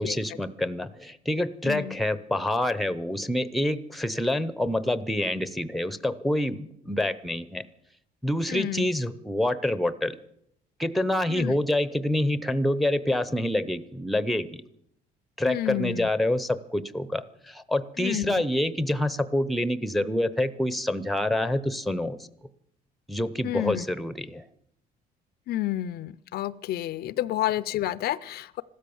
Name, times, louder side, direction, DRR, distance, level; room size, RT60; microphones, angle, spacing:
voice 1, 0.0-7.6 8.2-10.2 10.8-14.6 15.4-22.2 23.1-24.4, left 1 dB, ahead, 15 dB, 0.8 m, -27 dB
voice 2, 1.7-2.0 8.5-8.9 11.3-11.6 15.4-16.1 18.0-18.4 23.4-23.9 25.5-28.6, left 14 dB, 70° left, 18 dB, 0.6 m, -30 dB
15.0 x 13.0 x 7.1 m, 0.72 s
cardioid pair, 110°, 17 cm